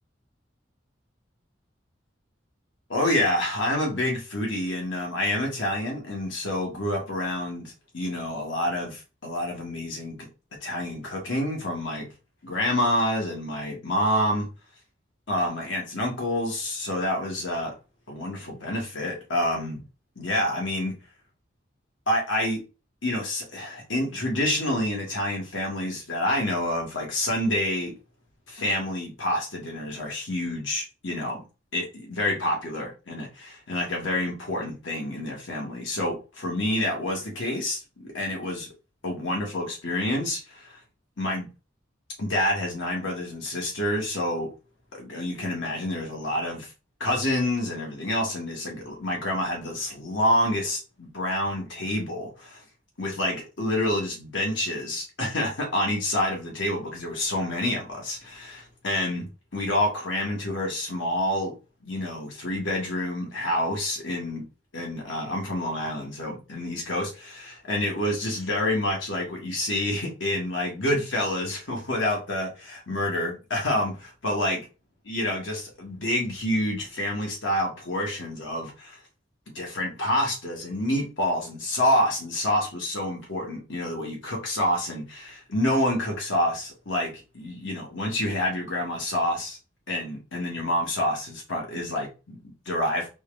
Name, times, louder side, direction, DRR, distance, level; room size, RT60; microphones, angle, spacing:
voice 1, 2.9-10.3 10.6-12.1 12.4-14.5 15.3-17.7 18.1-19.8 20.1-20.9 22.1-22.6 23.0-27.9 28.5-31.4 31.7-38.7 39.0-40.8 41.2-41.5 42.2-44.5 44.9-46.7 47.0-52.6 53.0-59.3 59.5-61.5 61.8-64.4 64.7-74.6 75.1-79.0 79.5-89.6 89.9-93.1, left 1 dB, 80° left, -1 dB, 1.7 m, -28 dB
4.2 x 2.6 x 3.4 m, 0.31 s
head